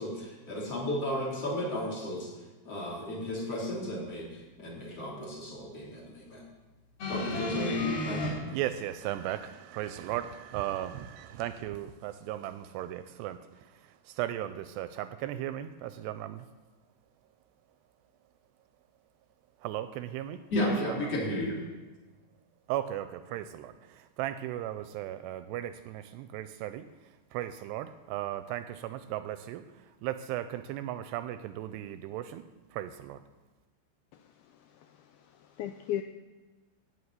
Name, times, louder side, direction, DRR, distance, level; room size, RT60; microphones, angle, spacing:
voice 1, 0.0-2.3 2.7-6.4 7.1-8.6 20.5-21.6, left 1 dB, 35° left, -4 dB, 4.0 m, -33 dB
sound 1, 7.0-8.3 9.3-9.4, left 1 dB, 60° left, 5.4 m, -33 dB
voice 2, 8.5-13.4 14.1-16.5 19.6-20.4 20.9-21.1 22.7-26.9 27.3-29.6 30.0-32.4 32.7-33.2, right 13 dB, 85° right, 11 dB, 2.6 m, -36 dB
voice 3, 34.5-36.0, left 11 dB, 90° left, 7 dB, 2.1 m, -37 dB
14.5 x 6.5 x 9.5 m, 1.2 s
omnidirectional pair, 5.1 m